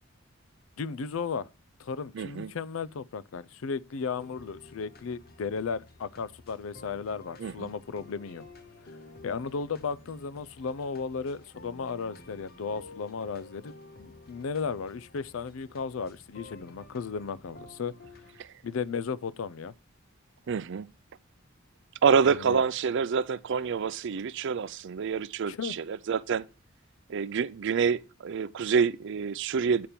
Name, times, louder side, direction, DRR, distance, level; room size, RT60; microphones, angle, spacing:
voice 1, 0.8-1.5 1.8-8.4 9.2-13.7 14.0-18.0 18.6-19.7 22.3-22.6 25.5-25.8, left 5 dB, 75° left, 0.5 m, -35 dB
voice 2, 2.1-2.5 7.4-7.7 18.4-18.5 20.5-20.9 22.0-26.4 27.1-29.9, right 6 dB, 60° right, 0.4 m, -27 dB
sound 1, 4.2-18.4, left 2 dB, 50° left, 1.3 m, -52 dB
8.6 x 5.2 x 4.3 m
head